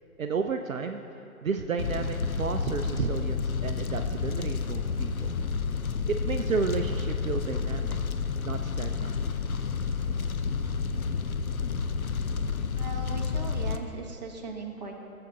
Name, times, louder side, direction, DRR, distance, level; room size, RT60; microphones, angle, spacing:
voice 1, 0.2-1.0 1.4-5.4 6.1-8.0 8.4-9.2, right 5 dB, 65° right, 6 dB, 0.6 m, -32 dB
Fire, 1.8-13.8, left 5 dB, 70° left, 0.7 m, -30 dB
voice 2, 12.7-15.0, right 3 dB, 30° right, 0 dB, 0.9 m, -39 dB
16.0 x 7.7 x 2.9 m, 2.7 s
figure-of-eight pair, 145°, 45 cm